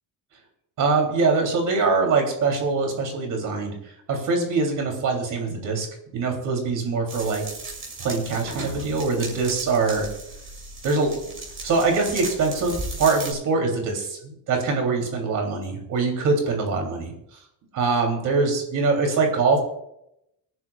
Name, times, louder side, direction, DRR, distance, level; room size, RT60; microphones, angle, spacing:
voice 1, 0.8-5.9 6.1-7.4 8.0-10.1 10.8-11.1 11.6-17.4 17.7-19.6, right 4 dB, 45° right, 2 dB, 3.4 m, -23 dB
sound 1, 7.1-13.3, right 2 dB, 30° right, 6.7 m, -36 dB
26.5 x 11.0 x 2.5 m, 0.79 s
cardioid pair, 175°, 42 cm